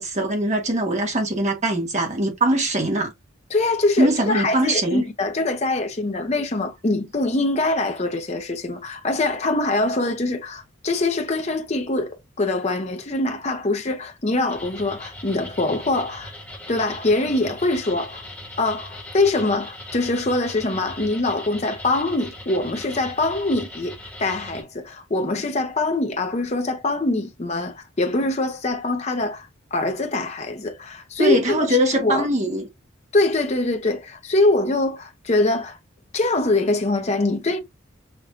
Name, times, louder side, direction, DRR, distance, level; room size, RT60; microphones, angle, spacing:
voice 1, 0.0-3.1 4.0-5.0 31.2-32.7, right 1 dB, 35° right, 1.4 m, -22 dB
voice 2, 3.5-16.3 16.7-18.2 18.6-32.3 33.1-35.8 36.1-37.6, left 2 dB, 30° left, 0.7 m, -23 dB
sound 1, 14.5-24.6, left 1 dB, 5° left, 1.4 m, -39 dB
5.8 x 2.7 x 2.4 m
head